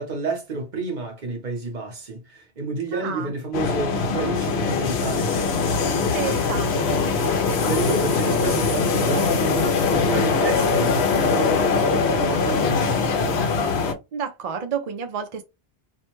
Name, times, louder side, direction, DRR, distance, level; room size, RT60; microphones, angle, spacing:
voice 1, 0.0-6.1 7.6-13.5, right 3 dB, 45° right, 0.9 m, -30 dB
voice 2, 2.9-3.3 5.9-7.1 14.1-15.4, right 7 dB, 60° right, 0.4 m, -30 dB
sound 1, 3.5-13.9, left 4 dB, 75° left, 0.9 m, -22 dB
2.5 x 2.2 x 2.9 m
omnidirectional pair, 1.1 m